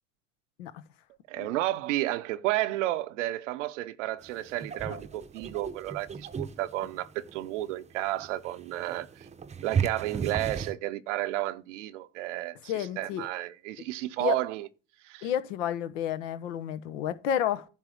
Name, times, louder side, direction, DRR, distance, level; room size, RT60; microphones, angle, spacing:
voice 1, 1.3-9.3 9.6-14.7 15.0-15.3, right 16 dB, 80° right, 0.7 m, -32 dB
sound 1, 4.2-10.7, right 6 dB, 20° right, 0.7 m, -36 dB
voice 2, 12.7-13.3 14.2-14.4 15.2-17.6, left 10 dB, 80° left, 1.0 m, -30 dB
10.0 x 3.5 x 6.5 m
hypercardioid pair, 85°, 37 cm